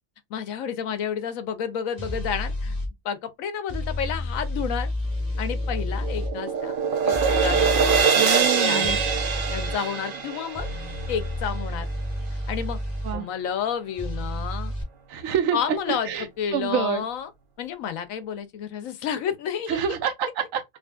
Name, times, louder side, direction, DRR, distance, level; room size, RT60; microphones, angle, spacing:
voice 1, 0.3-2.8 3.0-4.9 5.4-6.8 7.0-8.9 9.5-10.7 11.1-11.9 12.5-12.8 13.1-14.7 15.5-17.3 17.6-19.8, left 8 dB, 75° left, 1.1 m, -30 dB
sound 1, 2.0-2.9 3.7-6.3 7.1-8.0 8.8-9.7 10.5-13.2 14.0-14.8, left 1 dB, 30° left, 1.7 m, -30 dB
sound 2, 5.5-11.8, right 6 dB, 50° right, 0.6 m, -24 dB
voice 2, 8.1-9.0 13.0-13.3 15.1-16.3 16.5-17.0 19.7-20.6, right 8 dB, 80° right, 1.1 m, -27 dB
5.2 x 2.4 x 2.3 m
omnidirectional pair, 1.4 m